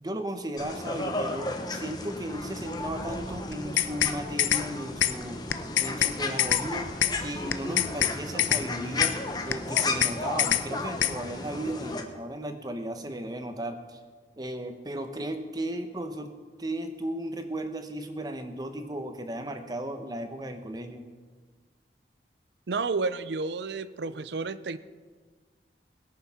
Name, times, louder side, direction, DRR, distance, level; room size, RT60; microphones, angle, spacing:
voice 1, 0.0-5.4 5.8-6.9 7.2-9.1 9.4-14.0 14.4-21.0, right 1 dB, 20° right, 7 dB, 0.9 m, -35 dB
sound 1, 0.6-12.0, left 2 dB, 20° left, 1.0 m, -34 dB
sound 2, 3.5-4.1 4.4-4.6 5.0-5.1 5.5-6.1 6.4-6.6 7.0-7.1 7.5-8.1 8.4-8.6 9.0-9.1 9.5-10.1 10.4-10.6 11.0-11.1, left 11 dB, 85° left, 0.6 m, -24 dB
voice 2, 22.7-24.8, right 4 dB, 70° right, 15 dB, 0.5 m, -31 dB
20.0 x 6.8 x 5.8 m, 1.5 s
head